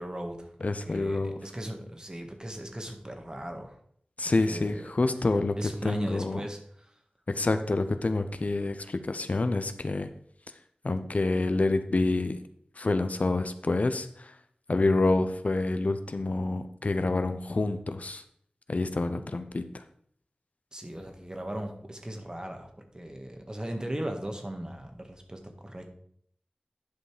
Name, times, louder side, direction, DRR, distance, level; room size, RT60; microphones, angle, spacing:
voice 1, 0.0-3.8 4.2-4.9 5.2-7.0 19.1-19.2 20.7-25.9, right 1 dB, 30° right, 4 dB, 1.7 m, -38 dB
voice 2, 0.6-1.4 4.2-5.6 5.8-6.4 7.3-10.1 10.8-12.4 12.8-14.4 14.7-18.2 18.7-19.8, left 2 dB, 60° left, 9 dB, 0.7 m, -27 dB
10.5 x 5.4 x 4.9 m, 0.64 s
wide cardioid pair, 50°, 3 cm